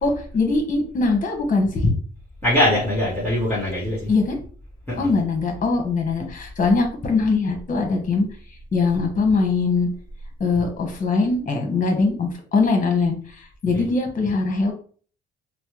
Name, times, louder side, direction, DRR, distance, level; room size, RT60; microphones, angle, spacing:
voice 1, 0.0-2.0 4.1-4.4 5.0-8.3 8.7-9.9 10.4-14.7, left 3 dB, 40° left, 3 dB, 1.2 m, -21 dB
voice 2, 2.4-4.1 4.9-5.1 6.2-6.3 13.6-13.9, left 1 dB, 10° left, -7 dB, 1.4 m, -22 dB
4.2 x 2.1 x 3.0 m, 0.44 s
cardioid pair, 90°, 20 cm